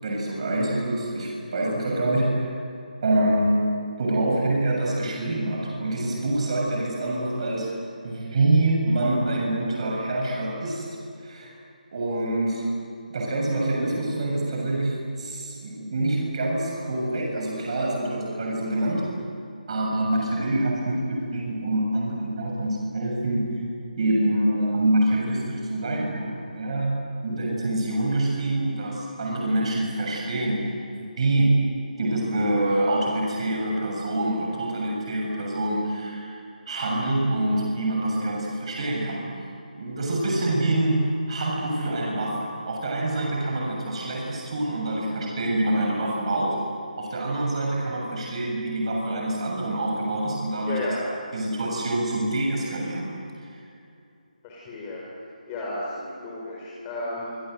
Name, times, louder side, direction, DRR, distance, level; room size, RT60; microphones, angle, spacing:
voice 1, 0.0-2.6 3.0-7.7 8.0-10.9 11.2-11.5 11.9-12.8 13.1-19.1 19.7-23.5 24.0-36.4 36.7-39.2 39.7-46.6 47.0-50.8 51.3-53.1 53.4-53.5, right 1 dB, 45° right, -2 dB, 7.3 m, -26 dB
voice 2, 50.7-51.0 54.4-55.0 55.5-57.4, left 2 dB, 20° left, -5 dB, 5.1 m, -33 dB
26.5 x 26.0 x 8.1 m, 2.5 s
figure-of-eight pair, 155°, 5 cm